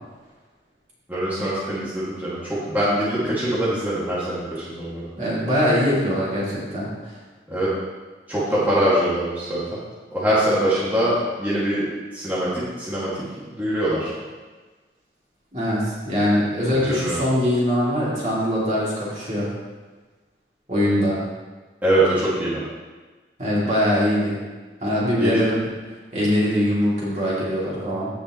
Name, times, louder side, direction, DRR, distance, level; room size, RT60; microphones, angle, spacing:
voice 1, 1.1-5.1 7.5-7.7 8.3-9.8 10.1-11.9 12.1-14.1 16.9-17.2 21.8-22.6 25.1-25.4, right 1 dB, 10° right, -11 dB, 2.2 m, -23 dB
voice 2, 5.2-7.1 15.5-19.5 20.7-21.2 23.4-24.4 24.8-25.5 26.1-28.1, equal, 40° right, -7 dB, 2.8 m, -22 dB
15.5 x 5.3 x 3.1 m, 1.3 s
head